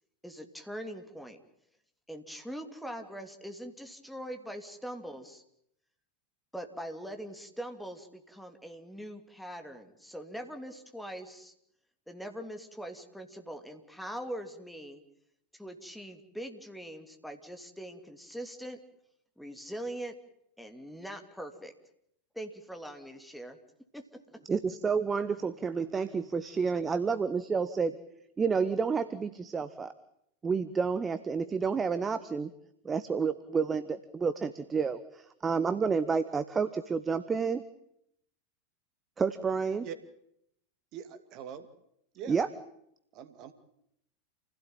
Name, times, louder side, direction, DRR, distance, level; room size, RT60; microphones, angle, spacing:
voice 1, 0.2-1.4 2.1-5.4 6.5-11.5 12.1-15.0 15.6-18.8 19.4-20.1 20.6-21.7 22.3-23.6 23.9-24.0, right 1 dB, ahead, 6 dB, 3.0 m, -42 dB
voice 2, 24.5-28.0 28.4-29.9 30.4-32.5 32.8-37.6 39.2-39.9 42.3-42.5, right 5 dB, 20° right, 12 dB, 1.2 m, -30 dB
voice 3, 40.9-41.7 42.1-42.4 43.1-43.5, right 8 dB, 45° right, 10 dB, 2.5 m, -43 dB
28.5 x 16.5 x 9.2 m, 0.75 s
figure-of-eight pair, 85°, 0 cm